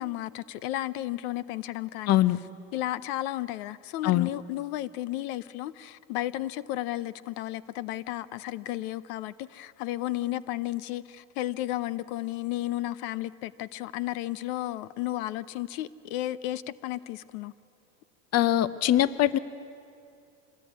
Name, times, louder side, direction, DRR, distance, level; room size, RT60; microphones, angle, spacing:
voice 1, 0.0-2.2 2.7-17.5, left 15 dB, 75° left, 0.8 m, -33 dB
voice 2, 2.1-2.4 4.0-4.3 18.3-19.4, left 13 dB, 35° left, 0.8 m, -22 dB
26.0 x 20.0 x 9.5 m
supercardioid pair, 125°, 45 cm